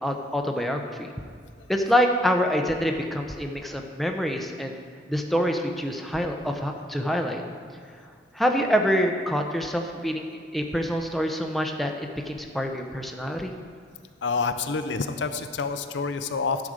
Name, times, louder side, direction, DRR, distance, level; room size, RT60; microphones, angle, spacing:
voice 1, 0.0-1.1 1.7-4.8 5.1-7.4 8.3-13.5, equal, ahead, 3 dB, 0.6 m, -26 dB
voice 2, 14.2-16.7, left 4 dB, 80° left, 9 dB, 0.6 m, -28 dB
10.5 x 4.9 x 6.5 m, 2.1 s
head